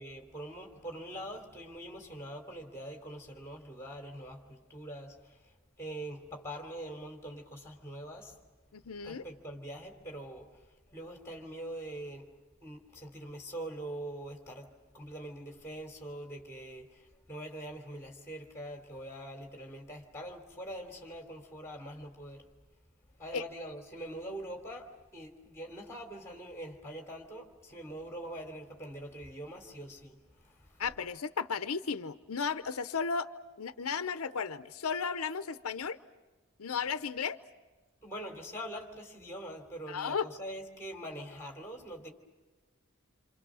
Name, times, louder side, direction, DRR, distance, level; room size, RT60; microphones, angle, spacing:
voice 1, 0.0-8.4 9.0-22.5 23.2-30.8 38.0-42.1, right 1 dB, 10° left, 3.1 m, -44 dB
voice 2, 8.7-9.2 23.3-23.4 30.8-33.3 33.6-36.0 36.6-37.4 39.9-40.3, left 5 dB, 90° left, 0.7 m, -34 dB
27.5 x 27.0 x 6.3 m
head